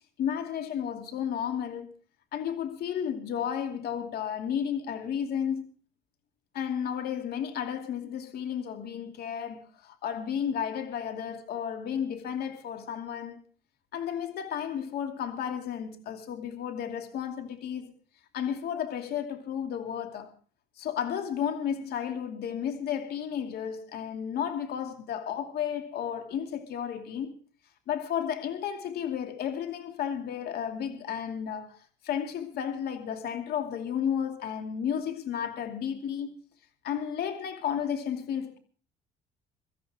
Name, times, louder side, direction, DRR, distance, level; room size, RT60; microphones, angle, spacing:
voice 1, 0.2-1.9 2.3-5.7 6.5-13.4 13.9-17.9 18.3-20.3 20.8-27.3 27.9-31.8 32.0-36.3 36.8-38.6, left 8 dB, 65° left, 2.6 m, -33 dB
24.0 x 14.0 x 3.7 m
cardioid pair, 110°, 17 cm